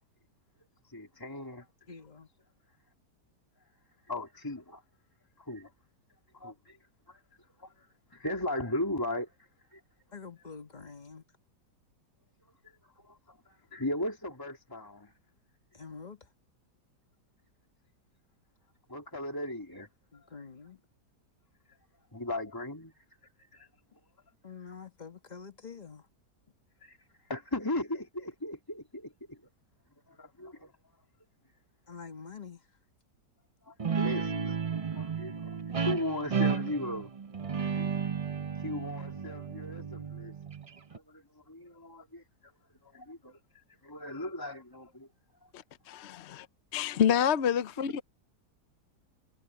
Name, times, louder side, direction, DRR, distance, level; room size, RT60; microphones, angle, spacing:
voice 1, 0.9-1.7 4.1-4.8 5.4-5.7 6.3-6.8 7.1-7.2 7.6-9.8 12.6-15.1 18.9-19.9 22.1-22.9 23.5-23.7 26.8-27.0 27.3-29.4 30.1-30.7 33.6-37.1 37.7-37.9 38.6-40.3 40.9-42.2 42.8-45.1 45.4-45.5, left 1 dB, 10° left, 3.1 m, -37 dB
voice 2, 1.9-2.3 10.1-11.2 15.7-16.3 20.1-20.8 24.4-26.1 31.9-32.6, left 5 dB, 25° left, 1.4 m, -46 dB
Guitar, 33.8-41.0, right 6 dB, 50° right, 0.4 m, -33 dB
voice 3, 45.5-46.5 46.7-48.0, left 9 dB, 55° left, 0.8 m, -28 dB
omnidirectional pair, 1.8 m